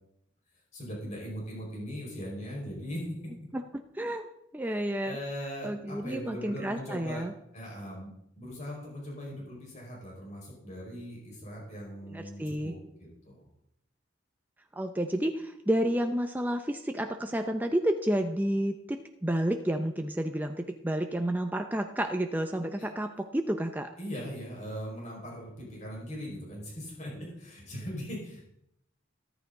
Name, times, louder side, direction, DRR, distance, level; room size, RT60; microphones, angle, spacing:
voice 1, 0.7-3.3 5.0-7.2 7.5-8.1 8.4-13.4 22.8-22.9 24.0-28.4, equal, 35° left, -3 dB, 5.1 m, -40 dB
voice 2, 3.9-4.3 4.5-5.2 5.6-7.3 12.1-12.7 14.8-23.9, right 1 dB, 10° right, 5 dB, 0.6 m, -30 dB
14.0 x 13.0 x 3.9 m, 0.75 s
head